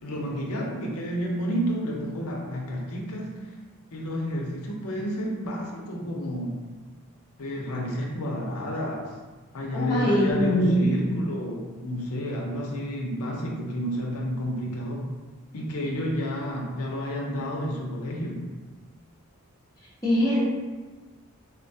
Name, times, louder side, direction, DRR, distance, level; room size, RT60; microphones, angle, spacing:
voice 1, 0.0-3.5 3.9-6.6 7.4-9.1 9.5-15.1 15.5-18.4, equal, 85° left, -1 dB, 0.6 m, -30 dB
voice 2, 9.7-11.1 20.0-20.4, equal, 15° left, -10 dB, 0.5 m, -22 dB
3.8 x 2.2 x 2.7 m, 1.3 s
head